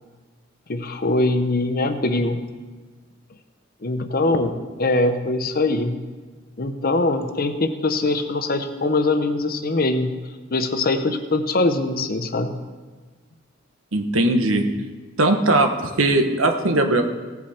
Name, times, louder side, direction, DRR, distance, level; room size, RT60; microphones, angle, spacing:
voice 1, 0.7-2.4 3.8-6.0 6.6-10.1 10.5-12.5, left 2 dB, 45° left, 8 dB, 0.9 m, -22 dB
voice 2, 13.9-14.6 15.2-15.7 16.0-17.0, right 2 dB, 85° right, 5 dB, 1.3 m, -19 dB
17.0 x 7.8 x 4.4 m, 1.4 s
head